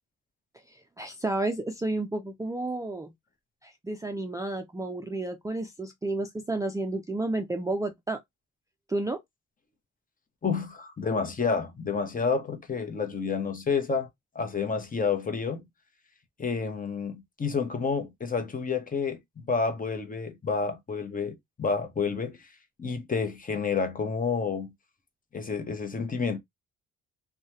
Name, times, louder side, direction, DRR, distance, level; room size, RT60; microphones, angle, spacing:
voice 1, 0.7-3.1 3.6-8.2 8.9-9.2, right 2 dB, 10° right, 0.4 m, -31 dB
voice 2, 10.4-14.1 14.3-15.6 16.4-22.5 22.8-24.7 25.3-26.4, left 5 dB, 30° left, 0.9 m, -29 dB
3.0 x 2.3 x 2.6 m
cardioid pair, 90°, 30 cm